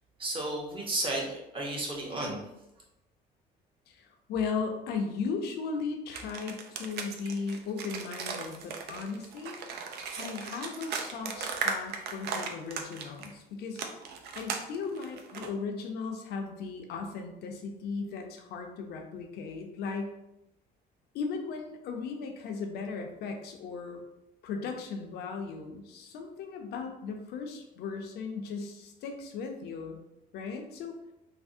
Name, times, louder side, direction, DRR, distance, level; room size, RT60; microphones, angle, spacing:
voice 1, 0.2-2.4, right 2 dB, 30° right, -2 dB, 0.9 m, -33 dB
voice 2, 3.9-9.6 10.2-13.8 14.3-20.1 21.1-24.0 24.4-30.0 30.3-31.0, left 5 dB, 70° left, 4 dB, 0.5 m, -37 dB
sound 1, 6.1-13.3 13.7-15.5, right 5 dB, 70° right, 0.4 m, -37 dB
3.3 x 2.0 x 2.6 m, 0.88 s
cardioid pair, 110°, 17 cm